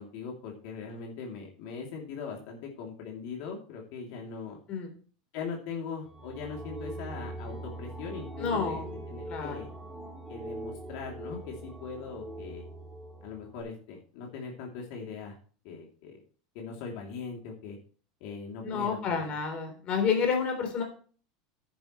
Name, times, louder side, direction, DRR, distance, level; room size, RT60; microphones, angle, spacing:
voice 1, 0.0-4.6 5.3-9.7 10.3-12.6 13.2-15.4 15.6-16.2 16.5-17.8 18.2-19.2, left 5 dB, 60° left, 0 dB, 2.8 m, -40 dB
sound 1, 6.1-13.6, right 1 dB, 10° right, 2.2 m, -42 dB
voice 2, 8.4-8.9 9.3-9.7 18.6-20.8, left 6 dB, 35° left, 4 dB, 3.6 m, -29 dB
10.5 x 10.0 x 3.1 m, 0.41 s
supercardioid pair, 145°, 3 cm